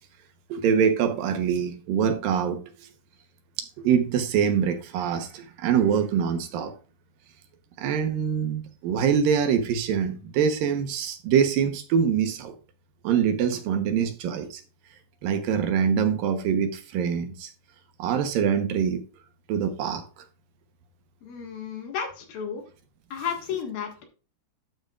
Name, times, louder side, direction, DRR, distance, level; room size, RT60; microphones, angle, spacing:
voice 1, 0.5-2.6 3.8-6.7 7.8-12.6 13.0-14.6 15.2-17.5 18.0-19.0 19.5-20.1, right 7 dB, 75° right, 2.6 m, -24 dB
voice 2, 21.2-22.6 23.1-24.0, left 7 dB, 70° left, 3.4 m, -33 dB
12.0 x 8.2 x 2.4 m
omnidirectional pair, 4.3 m